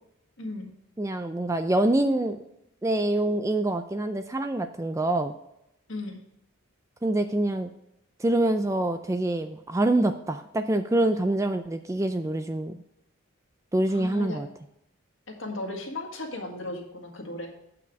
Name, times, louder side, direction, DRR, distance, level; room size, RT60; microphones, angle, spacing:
voice 1, 1.0-2.4 2.8-5.3 7.0-7.7 8.2-12.8 13.7-14.5, right 1 dB, 15° right, 8 dB, 0.3 m, -25 dB
voice 2, 13.9-14.4 15.4-17.5, left 2 dB, 60° left, 1 dB, 1.8 m, -35 dB
8.4 x 5.8 x 4.7 m, 0.80 s
head